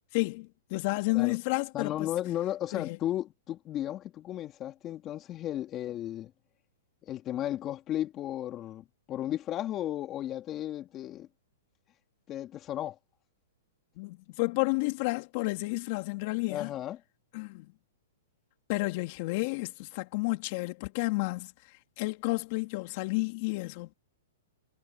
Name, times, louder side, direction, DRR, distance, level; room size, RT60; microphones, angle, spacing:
voice 1, 0.1-2.1 2.7-3.0 14.0-16.7 17.3-17.7 18.7-23.9, left 25 dB, 45° left, 3.0 m, -31 dB
voice 2, 1.7-6.3 7.0-11.3 12.3-13.0 16.5-17.0, left 12 dB, 25° left, 2.8 m, -34 dB
hypercardioid pair, 140°, 0 cm